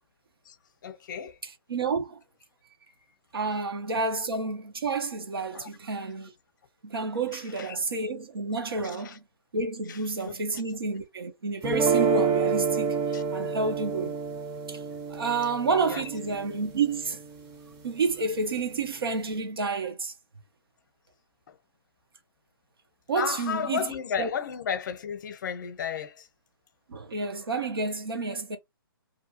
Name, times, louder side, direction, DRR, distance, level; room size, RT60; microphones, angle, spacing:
voice 1, 0.8-1.4 3.5-3.6 4.0-4.1 5.5-5.7 7.3-7.8 8.8-9.2 9.9-10.6 13.1-13.2 15.9-16.0 21.5-21.6 23.1-26.3, left 7 dB, 55° left, 0.7 m, -34 dB
voice 2, 1.7-2.2 3.3-6.3 6.8-9.2 9.5-13.0 13.3-14.2 14.7-14.8 15.1-17.2 17.8-20.1 23.1-24.3 26.9-28.6, right 4 dB, 75° right, 0.9 m, -30 dB
sound 1, 11.6-17.7, right 6 dB, 20° right, 0.6 m, -29 dB
2.7 x 2.3 x 2.8 m
hypercardioid pair, 140°, 12 cm